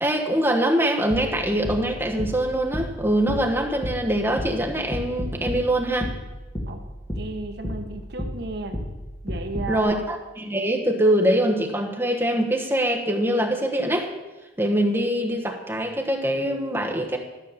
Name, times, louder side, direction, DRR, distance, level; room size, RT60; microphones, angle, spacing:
voice 1, 0.0-6.1 9.7-14.1 14.6-17.2, right 1 dB, 10° right, 2 dB, 1.2 m, -23 dB
sound 1, 1.1-9.8, equal, 20° left, 2.0 m, -33 dB
voice 2, 7.1-8.8 9.2-9.9, right 2 dB, 60° right, 6 dB, 1.1 m, -33 dB
13.0 x 5.8 x 7.0 m, 1.1 s
head